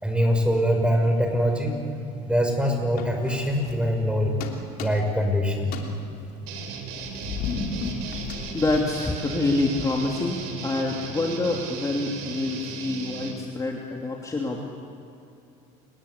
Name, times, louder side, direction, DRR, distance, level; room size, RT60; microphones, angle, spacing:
voice 1, 0.0-1.8 2.3-4.4 4.8-5.7 8.0-8.5, equal, 5° right, 3 dB, 5.9 m, -23 dB
sound 1, 3.0-4.1 4.4-5.3 5.6-9.4, left 5 dB, 60° left, 3.2 m, -35 dB
sound 2, 6.5-13.3, right 6 dB, 80° right, 4.0 m, -36 dB
voice 2, 8.5-14.6, left 2 dB, 20° left, 0 dB, 2.9 m, -26 dB
29.5 x 19.0 x 8.4 m, 2.7 s
supercardioid pair, 105°, 18 cm